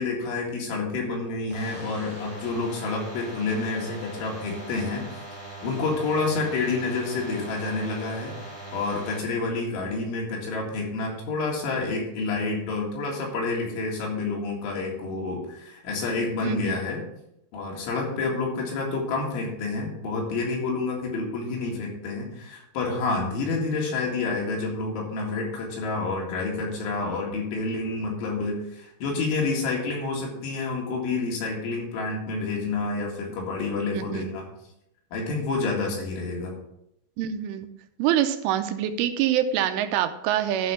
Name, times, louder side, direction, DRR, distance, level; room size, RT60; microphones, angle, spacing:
voice 1, 0.0-5.0 5.6-8.3 8.7-17.0 17.5-34.5 35.1-36.5, left 3 dB, 75° left, -1 dB, 4.4 m, -29 dB
sound 1, 1.5-9.2, right 2 dB, 15° left, 1.7 m, -41 dB
voice 2, 16.4-16.8 33.9-34.2 37.2-37.7 38.0-40.7, right 10 dB, 85° right, 8 dB, 3.1 m, -25 dB
12.0 x 4.5 x 6.9 m, 0.79 s
omnidirectional pair, 5.7 m